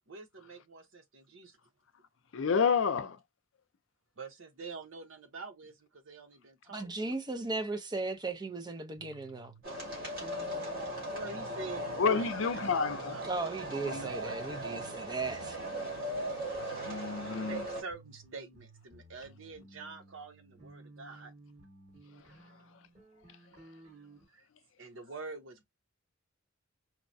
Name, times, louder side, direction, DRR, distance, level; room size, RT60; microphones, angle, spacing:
voice 1, 0.1-1.6 4.2-7.1 11.1-13.7 14.0-14.6 17.2-21.3 23.3-23.5 24.3-24.5 24.8-25.6, right 4 dB, 75° right, 0.8 m, -46 dB
voice 2, 2.3-3.2 12.0-13.2 13.9-14.1 16.8-17.6, left 5 dB, 70° left, 0.5 m, -29 dB
voice 3, 6.7-9.5 13.2-15.6, right 3 dB, 20° right, 0.6 m, -36 dB
sound 1, 9.0-12.3 12.5-14.9 15.2-17.6 17.9-24.2, right 2 dB, 35° right, 1.9 m, -56 dB
sound 2, 9.6-17.8, right 1 dB, 55° right, 2.3 m, -38 dB
4.6 x 2.1 x 2.6 m
head